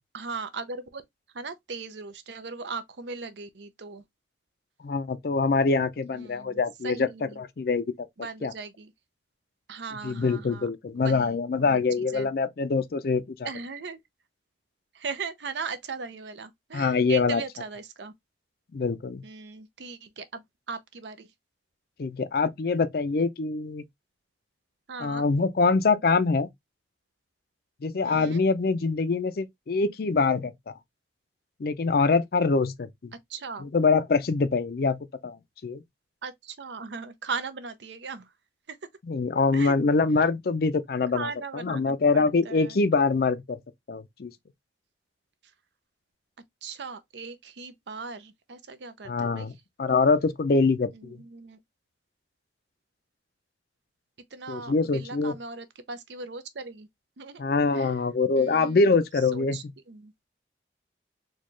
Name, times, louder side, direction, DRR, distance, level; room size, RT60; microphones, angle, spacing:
voice 1, 0.1-1.0 1.3-4.0 6.1-7.4 8.2-8.9 9.7-10.7 11.0-12.3 13.4-14.0 14.9-18.1 19.2-21.3 24.9-25.3 28.0-28.4 33.3-33.7 36.2-38.3 38.7-38.8 39.5-39.8 41.1-42.8 46.6-49.5 50.9-51.6 54.3-56.9 57.2-57.4 57.7-57.9 58.4-58.9 59.3-60.1, right 4 dB, 75° right, 0.6 m, -38 dB
voice 2, 4.8-7.1 7.4-7.9 8.4-8.5 10.0-13.5 16.7-17.4 18.7-19.2 22.0-23.8 25.0-26.5 27.8-30.7 31.6-33.1 33.6-35.4 35.6-35.8 39.1-43.6 43.9-44.3 49.1-49.5 49.8-51.2 54.5-55.4 57.4-59.6, left 4 dB, 55° left, 0.4 m, -24 dB
4.2 x 2.3 x 3.0 m
head